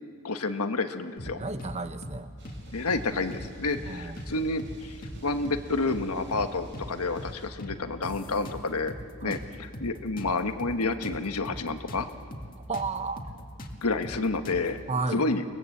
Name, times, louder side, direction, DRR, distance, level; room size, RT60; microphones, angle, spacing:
voice 1, 0.2-1.4 2.7-5.0 5.2-8.9 9.2-12.1 13.8-14.8 15.1-15.4, left 3 dB, 85° left, 8 dB, 1.3 m, -29 dB
sound 1, 1.2-1.8 2.0-2.2 2.4-3.5 3.7-3.9 4.2-5.2 5.4-5.6 5.9-6.9 7.2-7.3 7.6-9.0 9.3-12.0 12.3-12.5 12.7-14.8, equal, 40° left, 2.0 m, -40 dB
voice 2, 1.3-2.3 3.8-4.2 9.2-9.4 12.7-13.2 14.9-15.2, right 3 dB, 30° right, 10 dB, 0.9 m, -32 dB
sound 2, 2.4-7.5, right 1 dB, 55° right, 5.0 m, -50 dB
28.5 x 19.5 x 7.9 m, 2.2 s
head